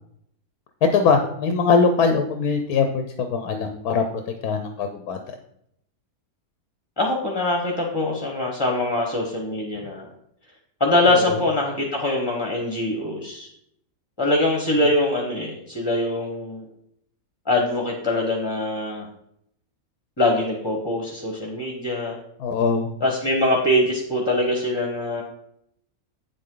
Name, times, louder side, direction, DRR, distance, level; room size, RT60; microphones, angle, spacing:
voice 1, 0.9-4.0 4.4-5.2 11.1-11.4 22.4-22.9, left 5 dB, 90° left, 6 dB, 1.3 m, -21 dB
voice 2, 7.0-10.1 10.8-13.5 14.2-16.6 17.5-19.1 20.2-22.2 23.0-25.2, left 1 dB, 20° left, 0 dB, 1.2 m, -23 dB
8.9 x 7.7 x 3.9 m, 0.74 s
omnidirectional pair, 1.6 m